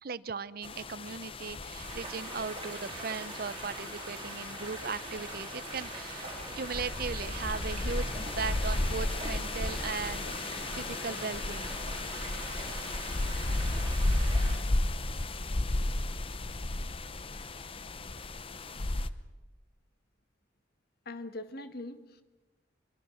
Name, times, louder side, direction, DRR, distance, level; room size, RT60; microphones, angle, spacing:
voice 1, 0.0-6.3 6.6-11.8, right 5 dB, 50° right, 16 dB, 0.7 m, -38 dB
sound 1, 0.6-19.1, left 2 dB, 30° left, 0.8 m, -34 dB
sound 2, 1.7-14.6, right 3 dB, 25° right, 4.6 m, -43 dB
voice 2, 21.1-22.2, left 2 dB, 55° left, 9 dB, 1.8 m, -41 dB
25.0 x 22.5 x 6.5 m, 1.2 s
head